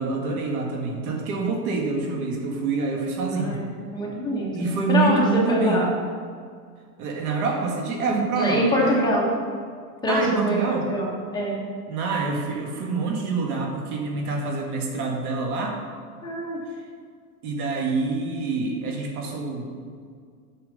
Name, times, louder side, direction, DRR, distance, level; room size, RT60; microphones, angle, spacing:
voice 1, 0.0-3.6 4.4-5.9 7.0-9.1 10.1-10.9 11.9-15.8 17.4-19.8, right 4 dB, 65° right, 2 dB, 2.0 m, -26 dB
voice 2, 3.9-5.9 8.4-9.3 10.0-11.6 16.2-16.6, equal, 10° left, -5 dB, 1.5 m, -24 dB
8.8 x 6.9 x 5.4 m, 2.1 s
supercardioid pair, 155°, 48 cm